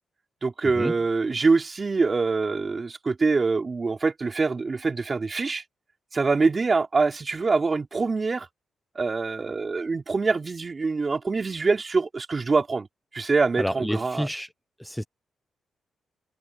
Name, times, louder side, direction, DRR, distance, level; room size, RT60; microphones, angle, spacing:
voice 1, 0.4-5.6 6.1-8.5 8.9-12.9 13.1-14.3, right 4 dB, 35° right, 3.3 m, -24 dB
voice 2, 13.6-14.5 14.8-15.0, equal, ahead, 1.0 m, -29 dB
cardioid pair, 85°, 0 cm